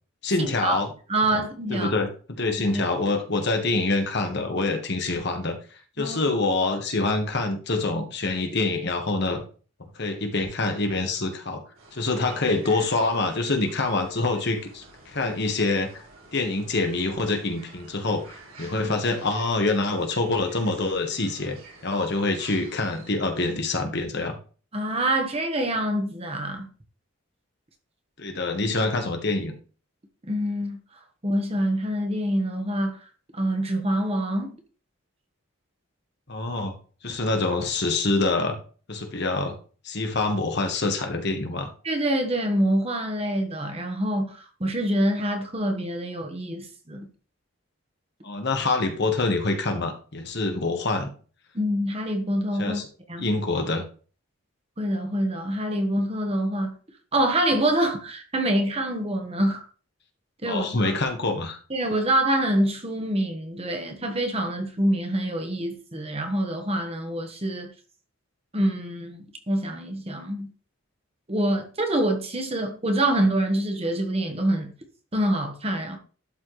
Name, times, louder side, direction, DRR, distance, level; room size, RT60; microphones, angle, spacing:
voice 1, 0.2-0.9 1.3-1.4 1.7-2.1 2.4-5.6 6.0-9.4 9.9-11.6 11.9-16.0 16.3-18.2 18.6-21.6 21.8-24.4 28.2-29.5 36.3-36.7 37.0-38.6 38.9-39.6 39.8-41.7 48.2-51.1 52.6-52.9 53.2-53.8 60.5-61.6, left 2 dB, 50° left, 1.3 m, -25 dB
voice 2, 1.1-1.9 2.7-2.8 6.0-6.4 18.8-18.9 24.7-26.7 30.2-30.8 31.2-33.0 33.3-34.5 41.8-47.1 51.5-52.8 53.1-53.2 54.8-56.7 57.1-59.7 60.4-60.9 61.7-67.7 68.5-70.5 71.3-74.7 75.1-76.0, right 1 dB, 25° right, 1.1 m, -26 dB
sound 1, 11.7-23.1, right 2 dB, 70° right, 3.7 m, -49 dB
12.0 x 4.2 x 3.2 m
head